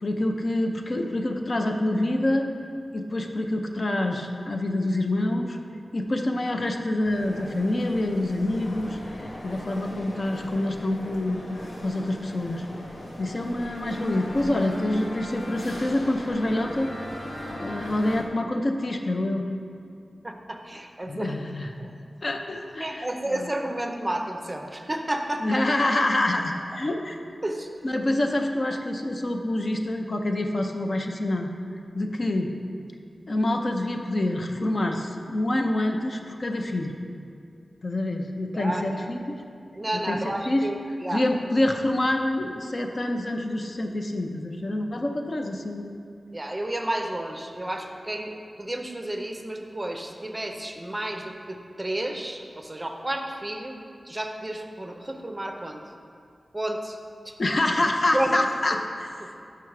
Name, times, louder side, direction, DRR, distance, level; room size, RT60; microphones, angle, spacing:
voice 1, 0.0-2.5 2.9-5.6 5.9-12.7 13.2-16.9 17.6-19.4 21.0-21.7 22.2-23.5 25.4-27.2 27.8-31.5 31.9-32.5 33.3-36.9 37.8-39.4 39.9-40.7 41.1-45.9 57.4-58.8, left 1 dB, 50° left, 3 dB, 0.5 m, -26 dB
sound 1, 7.0-18.2, left 1 dB, 70° left, 0.9 m, -38 dB
voice 2, 20.2-21.3 21.8-21.9 22.8-25.6 27.4-27.7 38.5-39.1 39.7-40.8 41.0-41.2 46.3-53.7 54.0-55.8 56.5-57.0 57.2-57.4 58.1-58.4 59.2-59.3, right 1 dB, 20° right, 3 dB, 0.5 m, -31 dB
6.0 x 5.7 x 4.7 m, 2.5 s
wide cardioid pair, 95°, 0 cm